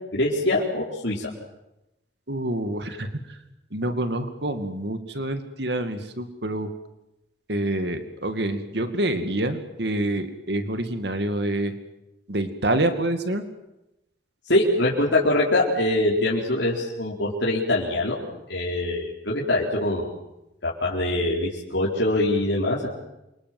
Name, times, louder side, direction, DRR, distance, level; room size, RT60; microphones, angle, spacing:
voice 1, 0.1-1.3 14.5-18.2 18.5-20.1 20.6-22.9, left 1 dB, 75° left, -4 dB, 4.7 m, -23 dB
voice 2, 2.3-3.1 3.7-6.7 7.5-11.7 12.3-13.4, right 1 dB, 65° right, 8 dB, 2.3 m, -27 dB
28.0 x 25.0 x 7.9 m, 0.92 s
head